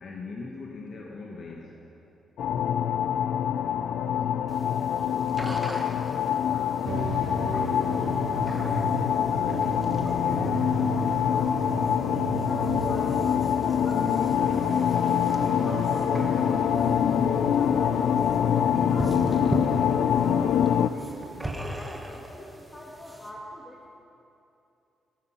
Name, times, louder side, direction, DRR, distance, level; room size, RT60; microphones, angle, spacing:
voice 1, 0.0-2.1 3.0-3.3, left 3 dB, 50° left, -1 dB, 1.4 m, -41 dB
sound 1, 2.4-20.9, left 9 dB, 75° left, 0.5 m, -25 dB
Stomach squelch, 4.5-23.3, right 1 dB, 10° right, 1.5 m, -42 dB
voice 2, 5.3-6.8 7.5-13.2 13.7-17.0 17.3-18.0 18.7-20.1 20.5-21.1 21.5-23.9, left 1 dB, 15° left, -3 dB, 1.6 m, -44 dB
sound 2, 6.8-21.7, right 5 dB, 80° right, 2.0 m, -36 dB
18.5 x 13.0 x 5.7 m, 2.7 s
cardioid pair, 150°, 0 cm